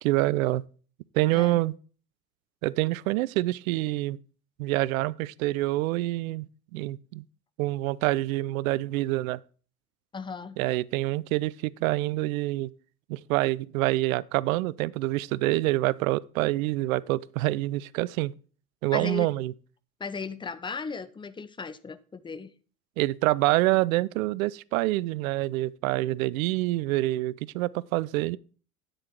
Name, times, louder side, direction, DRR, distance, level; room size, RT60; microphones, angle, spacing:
voice 1, 0.0-0.6 1.1-1.7 2.6-4.2 4.6-7.2 7.6-9.4 10.6-12.7 13.1-18.3 18.8-19.5 23.0-28.4, right 18 dB, 65° right, 0.5 m, -26 dB
voice 2, 10.1-10.6 18.9-19.3 20.0-22.5, left 4 dB, 10° left, 0.5 m, -36 dB
9.3 x 6.5 x 4.4 m
hypercardioid pair, 80°, 45 cm